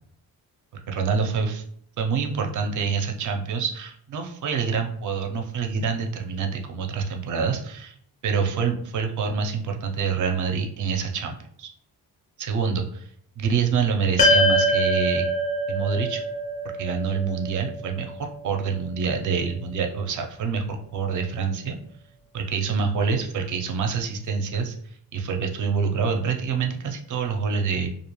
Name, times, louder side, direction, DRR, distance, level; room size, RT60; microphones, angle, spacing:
voice 1, 0.9-1.6 2.0-7.9 8.2-11.7 12.4-13.1 13.4-15.2 15.7-16.2 16.8-21.8 22.3-27.9, right 5 dB, 50° right, 4 dB, 0.4 m, -26 dB
sound 1, 14.2-18.7, equal, 20° left, 0.3 m, -23 dB
2.5 x 2.2 x 2.9 m, 0.65 s
cardioid pair, 175°, 40 cm